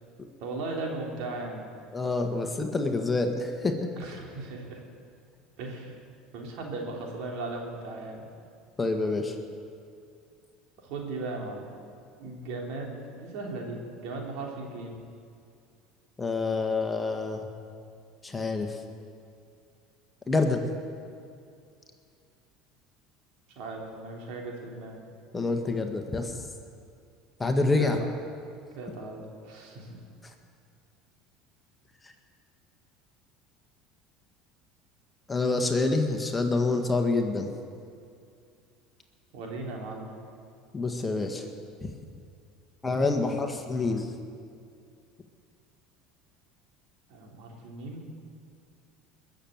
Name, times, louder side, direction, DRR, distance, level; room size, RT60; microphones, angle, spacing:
voice 1, 0.4-1.6 4.0-4.8 5.6-6.0 6.3-8.3 10.8-11.6 12.2-15.0 23.6-25.0 27.7-27.9 28.8-29.9 39.3-40.1 47.1-48.1, right 2 dB, 65° right, 0 dB, 3.4 m, -37 dB
voice 2, 1.9-3.8 8.8-9.4 16.2-17.5 18.2-18.8 20.3-20.7 25.3-26.5 27.4-28.0 30.2-30.3 32.0-32.1 35.3-37.5 40.7-41.5 42.8-44.1, left 3 dB, 20° left, 4 dB, 1.7 m, -27 dB
22.0 x 7.4 x 8.0 m, 2.4 s
hypercardioid pair, 80°, 0 cm